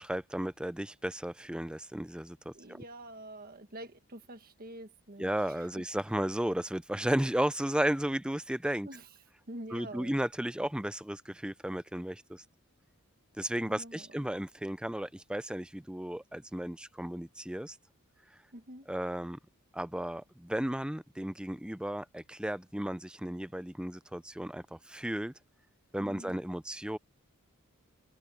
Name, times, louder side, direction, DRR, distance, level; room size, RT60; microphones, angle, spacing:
voice 1, 0.0-2.8 5.2-8.9 9.7-12.4 13.4-17.8 18.9-19.4 19.7-25.3 25.9-27.0, right 1 dB, 5° right, 0.4 m, -34 dB
voice 2, 2.5-5.8 8.8-9.1 9.5-10.2 13.6-14.2 18.5-18.9 26.0-26.4, right 1 dB, 40° right, 1.7 m, -47 dB
head